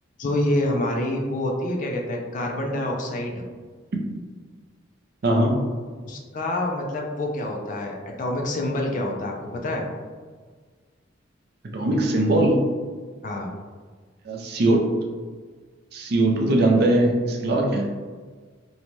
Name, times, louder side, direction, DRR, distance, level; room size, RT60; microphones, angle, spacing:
voice 1, 0.2-3.4 6.0-9.9 13.2-13.5, left 1 dB, 40° left, 1 dB, 0.4 m, -27 dB
voice 2, 5.2-5.6 11.7-12.6 14.2-14.8 15.9-17.9, right 1 dB, 50° right, 1 dB, 0.4 m, -20 dB
2.6 x 2.2 x 3.0 m, 1.5 s
head